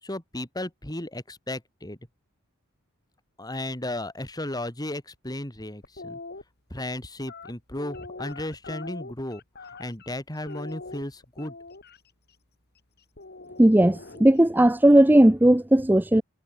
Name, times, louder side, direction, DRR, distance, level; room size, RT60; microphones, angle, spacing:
voice 1, 0.0-2.0 3.4-6.2 6.7-9.4 9.8-11.5, left 1 dB, 20° left, 3.0 m, -34 dB
sound 1, 5.8-6.4 7.2-10.1 10.5-12.0 13.2-14.5, left 3 dB, 50° left, 3.1 m, -42 dB
voice 2, 13.6-16.2, right 1 dB, 10° right, 0.6 m, -17 dB
head